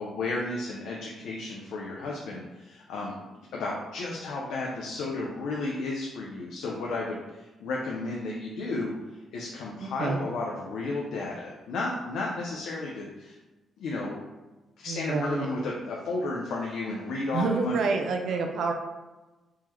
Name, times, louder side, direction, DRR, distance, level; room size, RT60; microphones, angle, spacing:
voice 1, 0.0-3.3 3.5-8.9 9.3-13.4 13.8-14.2 14.8-17.9, left 2 dB, 85° left, -3 dB, 0.5 m, -33 dB
voice 2, 9.8-10.2 14.9-15.5 17.3-18.7, right 4 dB, 70° right, 4 dB, 0.4 m, -28 dB
3.6 x 2.1 x 3.0 m, 1.1 s
cardioid pair, 90°, 0 cm